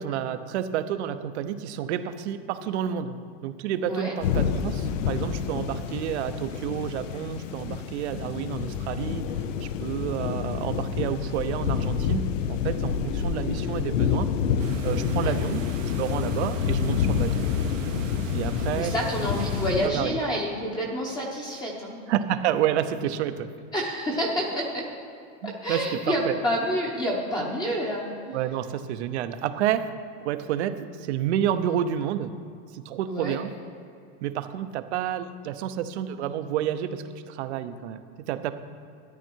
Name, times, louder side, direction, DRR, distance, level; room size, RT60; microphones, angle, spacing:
voice 1, 0.0-3.2 3.4-9.4 9.6-14.3 14.8-15.6 16.0-17.3 18.3-18.9 19.8-20.2 22.1-23.5 25.4-26.4 28.3-29.9 30.2-32.3 32.7-33.5 34.2-38.5, right 10 dB, 60° right, 10 dB, 0.9 m, -29 dB
sound 1, 4.2-19.9, left 7 dB, 80° left, 0.9 m, -28 dB
sound 2, 14.6-19.7, right 9 dB, 90° right, 1.2 m, -43 dB
voice 2, 15.0-15.3 18.7-22.0 23.7-24.9 25.4-28.1 33.1-33.4, equal, 10° left, -2 dB, 0.9 m, -28 dB
13.5 x 10.0 x 4.6 m, 2.6 s
supercardioid pair, 175°, 37 cm